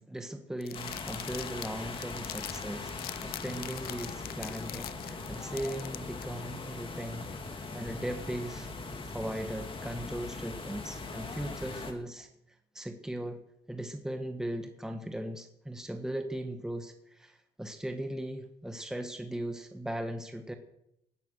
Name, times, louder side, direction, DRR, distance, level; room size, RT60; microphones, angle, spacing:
voice 1, 0.0-8.7 9.1-12.3 12.7-13.4 13.7-20.5, right 1 dB, 5° right, 5 dB, 1.6 m, -38 dB
sound 1, 0.6-6.2, left 14 dB, 65° left, 0.6 m, -43 dB
sound 2, 0.7-11.9, left 3 dB, 30° left, 2.7 m, -40 dB
19.0 x 10.0 x 6.6 m, 0.79 s
cardioid pair, 110°, 17 cm